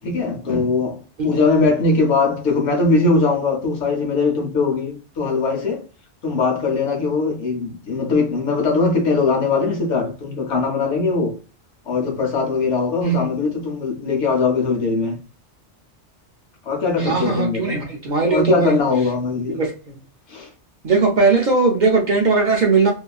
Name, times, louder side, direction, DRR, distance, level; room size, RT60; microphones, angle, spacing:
voice 1, 0.0-5.8 6.2-11.4 11.9-15.2 16.6-17.8 18.3-19.6 20.3-20.5, left 4 dB, 75° left, 1.1 m, -20 dB
voice 2, 13.0-13.3 17.0-18.8 19.5-20.0 20.8-22.9, right 4 dB, 55° right, 0.5 m, -19 dB
2.7 x 2.3 x 2.3 m
omnidirectional pair, 1.2 m